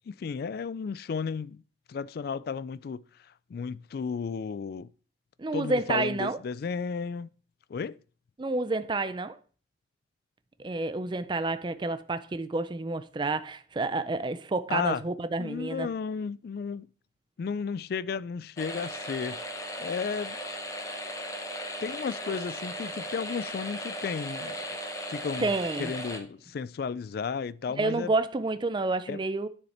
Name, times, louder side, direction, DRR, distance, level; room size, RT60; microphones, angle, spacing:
voice 1, 0.1-1.6 1.9-4.9 5.5-7.3 7.7-8.0 14.7-15.0 15.4-16.9 17.4-19.4 19.8-20.4 21.8-24.7 25.1-25.5 25.8-28.1 29.1-29.2, left 5 dB, 50° left, 0.3 m, -33 dB
voice 2, 5.4-6.4 8.4-9.4 10.6-15.9 25.4-25.9 27.8-29.5, right 3 dB, 25° right, 0.4 m, -29 dB
sound 1, 18.6-26.2, equal, 15° left, 0.9 m, -37 dB
9.7 x 6.3 x 4.3 m
head